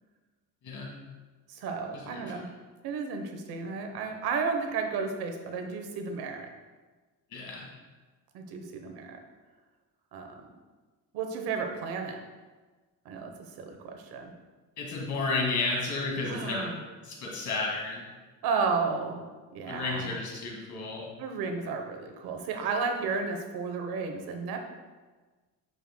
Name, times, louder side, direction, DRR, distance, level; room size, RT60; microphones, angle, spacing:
voice 1, 1.5-2.5 2.8-6.5 8.3-9.2 10.1-10.4 11.1-12.2 13.0-13.3 13.6-14.3 16.3-16.8 18.4-19.3 19.5-20.2 21.2-24.7, right 5 dB, 90° right, 4 dB, 1.0 m, -33 dB
voice 2, 2.1-2.4 7.3-7.7 14.8-16.6 17.0-18.0 19.7-21.1, left 3 dB, 50° left, -1 dB, 2.0 m, -32 dB
8.9 x 6.4 x 2.2 m, 1.3 s
cardioid pair, 135°, 36 cm